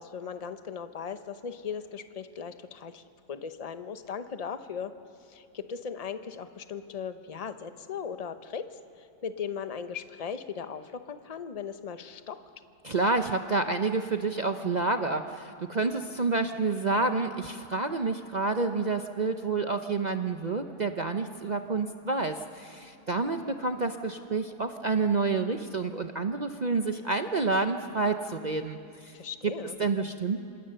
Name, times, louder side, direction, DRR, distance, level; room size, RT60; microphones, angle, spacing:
voice 1, 0.0-3.0 3.3-4.9 5.3-12.4 29.1-29.8, left 6 dB, 30° left, 10 dB, 0.7 m, -38 dB
voice 2, 12.8-29.2 29.8-30.4, right 3 dB, 45° right, 6 dB, 0.5 m, -29 dB
27.5 x 25.5 x 6.8 m, 2.5 s
omnidirectional pair, 1.7 m